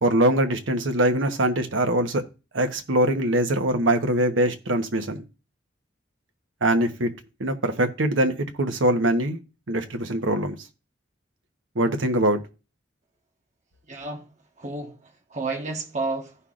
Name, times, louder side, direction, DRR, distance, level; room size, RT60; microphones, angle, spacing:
voice 1, 0.0-2.2 2.5-5.2 6.6-7.1 7.4-9.4 9.7-10.6 11.7-12.4, right 1 dB, 85° right, 1.1 m, -22 dB
voice 2, 13.9-14.3 14.6-16.4, right 3 dB, 40° right, 1.3 m, -31 dB
16.0 x 5.6 x 2.5 m
head